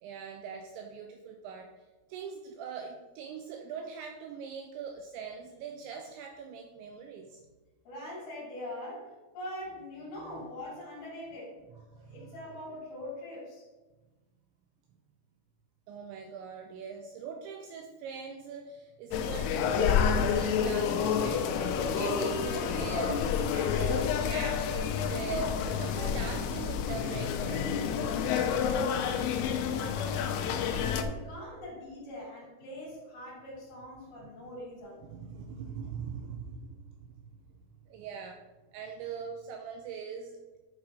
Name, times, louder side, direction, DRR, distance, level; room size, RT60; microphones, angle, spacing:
voice 1, 0.0-1.7 2.1-7.4 10.2-10.4 12.0-12.4 15.9-27.7 34.2-34.5 35.1-37.1 37.9-38.4 38.7-40.4, right 6 dB, 85° right, 4 dB, 2.6 m, -41 dB
voice 2, 7.8-11.5 12.1-13.6 28.6-35.1, left 1 dB, 55° left, -8 dB, 4.6 m, -43 dB
sound 1, 19.1-31.0, left 7 dB, 85° left, 3.2 m, -29 dB
10.5 x 4.9 x 3.8 m, 1.2 s
omnidirectional pair, 5.8 m